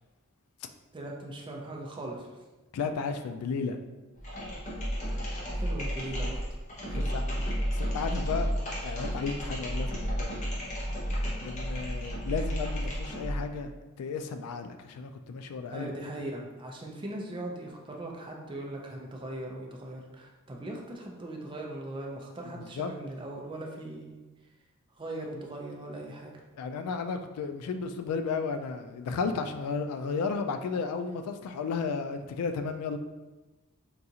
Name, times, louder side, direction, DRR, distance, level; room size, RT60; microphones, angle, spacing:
voice 1, 0.9-2.3 5.5-6.4 6.9-7.5 15.7-24.2 25.0-26.3, right 1 dB, 20° right, -1 dB, 0.5 m, -39 dB
voice 2, 2.7-3.8 6.9-7.2 7.7-8.5 8.8-10.4 11.4-13.7 14.0-15.9 22.6-22.9 26.6-33.0, left 5 dB, 80° left, 11 dB, 0.3 m, -33 dB
sound 1, 4.2-13.5, equal, 35° left, 0.8 m, -32 dB
3.8 x 2.4 x 2.7 m, 1.1 s
head